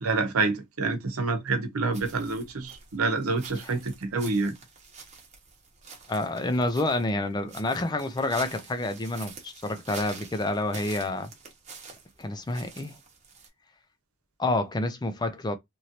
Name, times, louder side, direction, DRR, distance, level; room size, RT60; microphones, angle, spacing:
voice 1, 0.0-4.5, right 3 dB, 75° right, 0.8 m, -27 dB
sound 1, 1.9-13.5, right 5 dB, 30° right, 0.9 m, -47 dB
voice 2, 6.1-11.3 12.2-13.0 14.4-15.6, left 2 dB, 20° left, 0.4 m, -28 dB
3.0 x 2.6 x 2.8 m
head